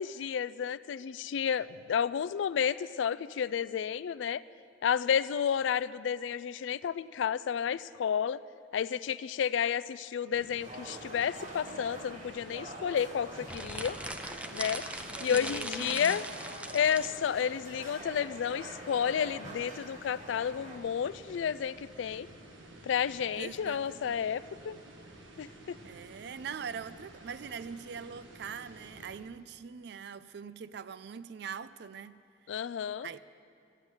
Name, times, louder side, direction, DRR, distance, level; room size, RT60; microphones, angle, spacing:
voice 1, 0.0-4.4 4.8-8.4 8.7-14.0 14.5-14.9 15.2-16.3 16.7-22.3 22.8-24.8 25.4-25.8 32.5-33.1, left 8 dB, 75° left, 0.3 m, -31 dB
sound 1, 10.3-29.2, right 1 dB, 85° right, 1.5 m, -52 dB
sound 2, 10.6-20.8, right 1 dB, 40° right, 1.6 m, -46 dB
sound 3, 13.4-17.1, right 1 dB, 5° right, 0.5 m, -40 dB
voice 2, 15.3-16.0 23.4-24.2 25.4-25.5 25.8-32.2 33.0-33.2, right 6 dB, 60° right, 0.4 m, -42 dB
13.0 x 9.6 x 7.9 m
head